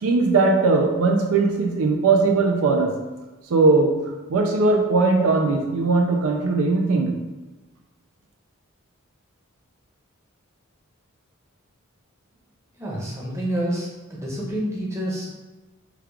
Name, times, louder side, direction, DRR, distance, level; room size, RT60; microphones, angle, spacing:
voice 1, 0.0-3.0 3.5-4.0 4.3-7.2, right 3 dB, 70° right, 2 dB, 0.4 m, -19 dB
voice 2, 12.8-15.3, right 1 dB, 15° right, -5 dB, 0.8 m, -28 dB
3.2 x 2.3 x 3.4 m, 1.2 s
head